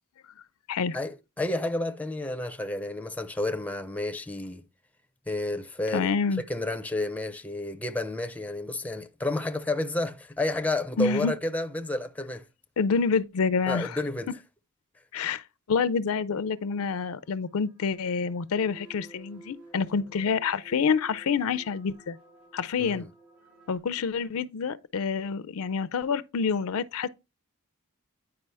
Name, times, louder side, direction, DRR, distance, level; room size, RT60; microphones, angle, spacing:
voice 1, 0.9-4.6 5.3-6.1 6.4-12.5 13.7-14.3 22.8-23.1, left 2 dB, 5° left, 0.5 m, -31 dB
voice 2, 5.9-6.4 11.0-11.3 12.8-14.0 15.1-22.2 22.5-23.0 23.7-27.1, left 5 dB, 65° left, 0.4 m, -27 dB
sound 1, 16.5-23.8, right 2 dB, 80° right, 3.7 m, -54 dB
9.6 x 4.8 x 3.4 m
head